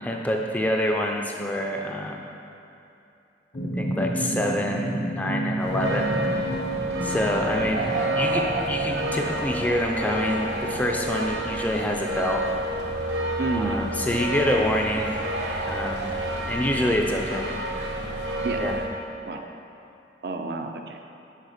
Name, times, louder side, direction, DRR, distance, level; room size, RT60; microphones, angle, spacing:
voice 1, 0.0-2.2 3.8-4.9 5.2-6.4 7.0-12.5 13.5-15.2 15.7-16.1 16.5-17.5 18.6-18.8, left 1 dB, 10° left, 0 dB, 0.4 m, -26 dB
sound 1, 3.5-9.4, right 1 dB, 50° left, 0.8 m, -30 dB
sound 2, 5.6-18.9, right 1 dB, 85° right, 0.9 m, -29 dB
voice 2, 13.4-14.2 18.4-18.6 19.3-19.5 20.2-21.0, right 3 dB, 60° right, 4 dB, 0.5 m, -30 dB
6.6 x 5.0 x 4.9 m, 2.8 s
head